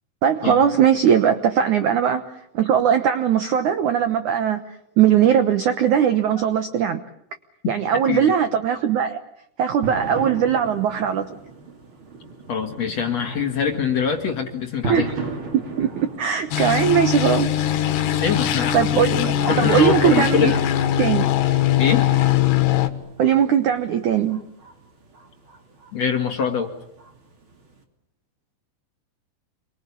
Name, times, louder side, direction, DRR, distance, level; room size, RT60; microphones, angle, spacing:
voice 1, 0.2-4.6 5.0-7.0 7.7-9.2 9.6-11.3 14.9-15.1 15.5-17.6 18.7-20.5 21.0-21.3 23.2-24.4, right 8 dB, 85° right, 9 dB, 1.7 m, -20 dB
voice 2, 8.1-8.4 12.5-15.1 18.2-20.6 21.8-22.1 25.9-26.7, left 7 dB, 45° left, 4 dB, 2.5 m, -24 dB
sound 1, 9.8-27.8, right 3 dB, 30° right, 2.9 m, -38 dB
sound 2, 16.5-22.9, left 11 dB, 70° left, 3.4 m, -21 dB
29.0 x 23.0 x 8.5 m, 0.75 s
omnidirectional pair, 5.3 m